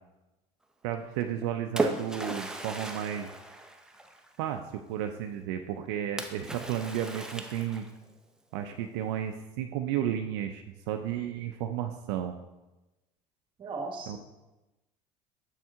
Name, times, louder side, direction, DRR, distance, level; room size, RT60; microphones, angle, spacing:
voice 1, 0.8-3.3 4.4-7.8 8.5-12.3 14.1-14.2, right 10 dB, 80° right, 6 dB, 0.4 m, -33 dB
Splash splatter, 1.2-4.4 6.2-8.1, right 2 dB, 5° right, 0.6 m, -36 dB
voice 2, 13.6-14.2, right 3 dB, 35° right, 4 dB, 1.2 m, -37 dB
7.1 x 4.3 x 3.6 m, 1.0 s
supercardioid pair, 100°, 14 cm